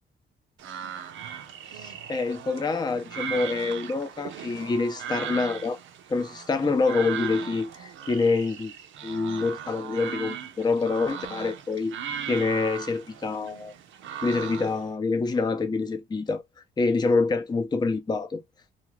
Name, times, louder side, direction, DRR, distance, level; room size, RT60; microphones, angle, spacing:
sound 1, 0.6-14.9, right 8 dB, 75° right, 0.6 m, -38 dB
voice 1, 1.7-5.8 6.1-8.7 9.0-12.0 12.3-13.7 14.2-16.4 16.8-18.4, left 4 dB, 20° left, 0.6 m, -26 dB
2.4 x 2.4 x 3.0 m
cardioid pair, 90°, 20 cm